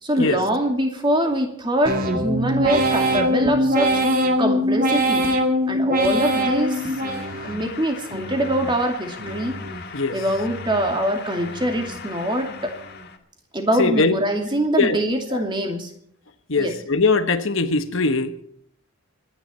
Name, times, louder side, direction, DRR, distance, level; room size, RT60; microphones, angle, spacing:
voice 1, 0.0-4.0 4.4-5.3 5.7-6.9 7.4-9.6 10.1-12.7 13.5-15.9 16.6-16.7, right 1 dB, 20° right, 2.6 m, -23 dB
sound 1, 1.9-7.7 8.1-8.7 9.2-9.8 10.3-10.9 11.4-12.0 12.5-13.0, equal, 40° right, 2.2 m, -23 dB
sound 2, 6.2-13.2, left 6 dB, 45° left, 2.0 m, -39 dB
voice 2, 9.9-10.2 13.8-14.1 14.8-15.0 15.3-15.4 16.5-18.4, left 3 dB, 60° left, 1.2 m, -21 dB
26.5 x 10.0 x 4.4 m
head